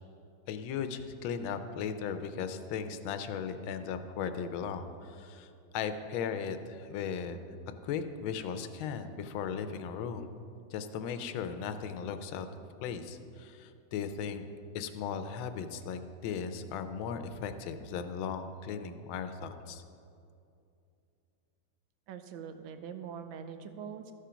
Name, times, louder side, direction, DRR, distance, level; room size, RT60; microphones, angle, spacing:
voice 1, 0.5-7.4 7.8-10.3 10.7-12.5 12.8-14.4 14.7-19.8, left 7 dB, 85° left, 9 dB, 1.4 m, -37 dB
voice 2, 22.1-24.1, right 7 dB, 85° right, 9 dB, 1.4 m, -43 dB
13.5 x 5.0 x 5.6 m, 2.6 s
omnidirectional pair, 2.2 m